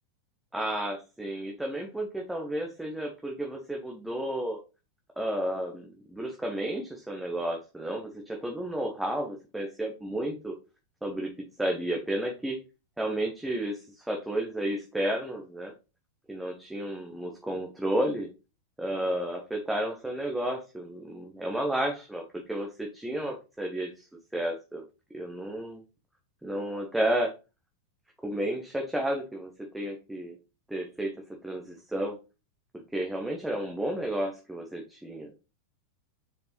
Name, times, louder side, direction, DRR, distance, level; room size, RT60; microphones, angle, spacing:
voice 1, 0.5-4.6 5.2-10.5 11.0-11.3 11.6-12.6 13.0-15.7 16.3-18.3 18.8-24.0 24.3-24.8 25.1-25.8 26.4-27.3 28.2-30.4 30.7-31.1 31.4-32.2 32.9-35.3, right 1 dB, 5° right, 1 dB, 1.1 m, -32 dB
6.8 x 5.0 x 3.2 m, 0.30 s
figure-of-eight pair, 90°, 0 cm